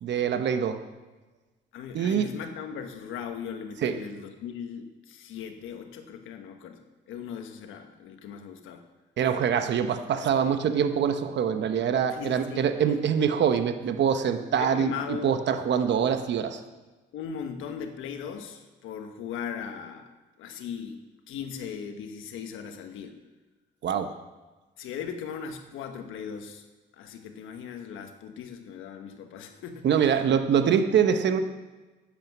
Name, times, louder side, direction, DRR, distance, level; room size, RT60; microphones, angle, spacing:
voice 1, 0.0-0.8 1.9-2.3 3.8-3.9 9.2-16.6 23.8-24.1 29.8-31.4, right 7 dB, 65° right, 8 dB, 0.9 m, -24 dB
voice 2, 1.7-6.8 7.1-8.8 12.1-13.0 14.6-15.4 17.1-20.1 20.4-21.0 21.3-23.1 24.8-26.6 26.9-30.2, left 7 dB, 90° left, 6 dB, 1.3 m, -38 dB
11.0 x 8.6 x 6.1 m, 1.2 s
cardioid pair, 90°, 20 cm